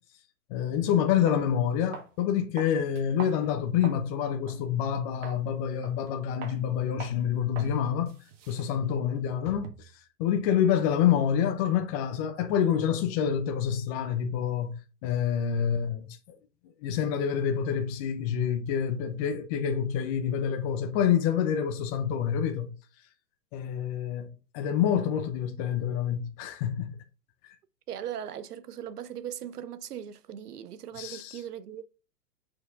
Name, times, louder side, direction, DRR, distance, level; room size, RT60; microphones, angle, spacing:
voice 1, 0.5-8.1 8.5-9.9 10.2-14.7 15.0-16.4 16.8-22.7 23.5-27.0 27.4-27.5 31.0-31.4, left 8 dB, 25° left, 0.6 m, -27 dB
sound 1, 0.7-0.8 1.3-1.4 1.9-2.2 2.6-4.1 4.5-4.6 5.2-5.4 5.8-6.1 6.4-6.6 7.0-7.2 7.6-7.8 8.1-10.0, right 6 dB, 50° right, 1.6 m, -44 dB
voice 2, 27.9-31.8, right 10 dB, 70° right, 0.7 m, -39 dB
6.3 x 4.7 x 3.5 m
figure-of-eight pair, 115°, 49 cm